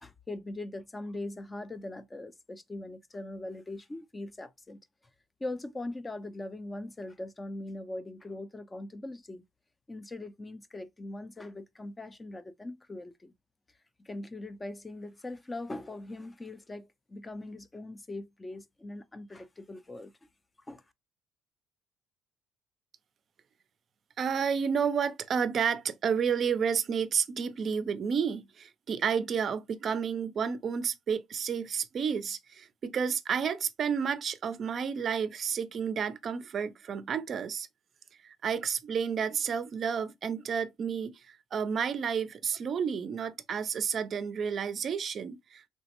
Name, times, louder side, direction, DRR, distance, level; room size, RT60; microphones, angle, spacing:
voice 1, 0.0-4.8 5.4-9.4 9.9-13.3 14.0-20.1 20.6-20.8, left 2 dB, 15° left, 0.4 m, -41 dB
voice 2, 24.2-37.7 38.2-45.7, right 7 dB, 45° right, 0.4 m, -31 dB
3.1 x 2.0 x 2.9 m
cardioid pair, 105°, 0 cm